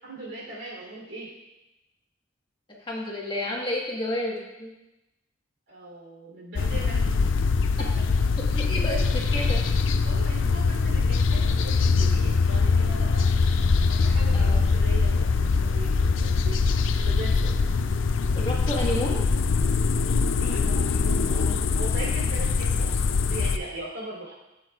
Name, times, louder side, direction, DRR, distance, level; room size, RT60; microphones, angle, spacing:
voice 1, 0.0-1.3 5.7-7.1 7.6-8.2 10.1-13.3 13.9-16.6 16.9-17.6 20.4-24.3, right 2 dB, 70° right, -3 dB, 3.5 m, -39 dB
voice 2, 2.9-4.7 8.5-9.6 14.3-14.6 18.3-19.2, left 1 dB, 25° left, -3 dB, 1.5 m, -30 dB
sound 1, 6.6-23.6, left 4 dB, 80° left, 0.5 m, -23 dB
13.5 x 8.3 x 2.4 m, 0.96 s
head